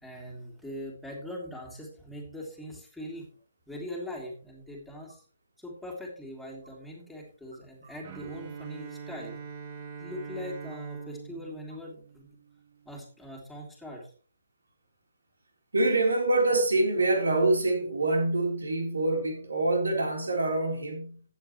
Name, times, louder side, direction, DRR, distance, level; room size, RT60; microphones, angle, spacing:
voice 1, 0.0-3.3 3.7-5.2 5.6-9.4 10.0-12.3 12.8-14.1, left 1 dB, ahead, 3.0 m, -41 dB
Bowed string instrument, 8.0-12.9, right 6 dB, 30° right, 1.4 m, -43 dB
voice 2, 15.7-21.2, right 2 dB, 65° right, 3.8 m, -25 dB
14.5 x 9.1 x 3.2 m
figure-of-eight pair, 135°, 0 cm